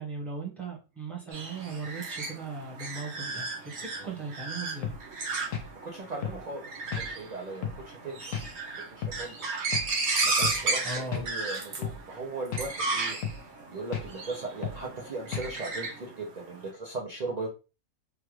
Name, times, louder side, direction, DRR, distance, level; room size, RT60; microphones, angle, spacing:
voice 1, 0.0-5.0 10.8-11.3, right 3 dB, ahead, -4 dB, 0.9 m, -38 dB
sound 1, 1.3-16.5, right 3 dB, 55° right, 1.0 m, -34 dB
sound 2, 4.8-5.0 5.5-5.7 6.2-6.4 6.9-7.1 7.6-7.8 8.3-8.5 9.0-9.2 9.7-9.9 10.4-10.6 11.1-11.3 11.8-12.0 12.5-12.7 13.2-13.4 13.9-14.1 14.6-14.8 15.3-15.5, left 7 dB, 70° left, 1.0 m, -33 dB
voice 2, 5.8-6.6 7.0-8.3 8.9-9.4 10.2-13.2 13.7-17.5, right 3 dB, 85° right, 0 dB, 0.3 m, -38 dB
3.2 x 2.3 x 3.1 m, 0.31 s
omnidirectional pair, 1.5 m